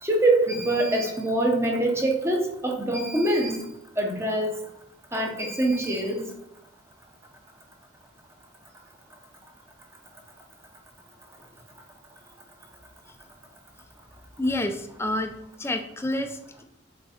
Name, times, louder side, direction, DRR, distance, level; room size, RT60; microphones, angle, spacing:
voice 1, 0.0-3.6 4.0-4.7 5.1-6.3, right 1 dB, 15° right, 2 dB, 0.9 m, -24 dB
voice 2, 14.4-16.6, left 1 dB, 15° left, 5 dB, 0.6 m, -29 dB
6.2 x 3.9 x 4.2 m, 0.78 s
head